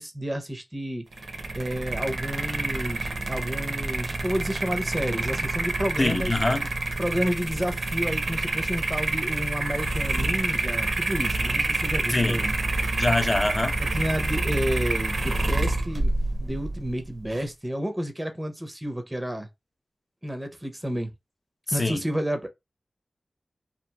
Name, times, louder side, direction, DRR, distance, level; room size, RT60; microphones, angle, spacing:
voice 1, 0.0-6.4 7.0-13.1 13.8-16.1 16.4-19.5 20.2-21.1 21.7-22.5, equal, 15° right, 0.6 m, -31 dB
sound 1, 1.1-17.5, right 2 dB, 65° right, 0.6 m, -28 dB
voice 2, 6.0-6.7 12.1-12.4 13.0-13.8 21.7-22.0, left 2 dB, 30° left, 0.5 m, -24 dB
2.9 x 2.4 x 2.2 m
wide cardioid pair, 85°, 0 cm